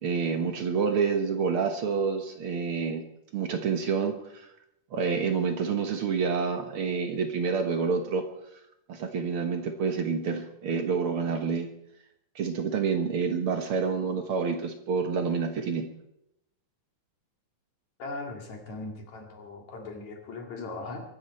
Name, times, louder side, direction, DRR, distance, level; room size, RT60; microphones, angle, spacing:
voice 1, 0.0-3.0 3.3-4.5 4.9-8.2 8.9-11.7 12.3-15.9, right 5 dB, 60° right, 6 dB, 1.5 m, -28 dB
voice 2, 18.0-21.0, left 3 dB, 60° left, 2 dB, 3.5 m, -39 dB
23.5 x 12.0 x 4.3 m, 0.82 s
omnidirectional pair, 3.8 m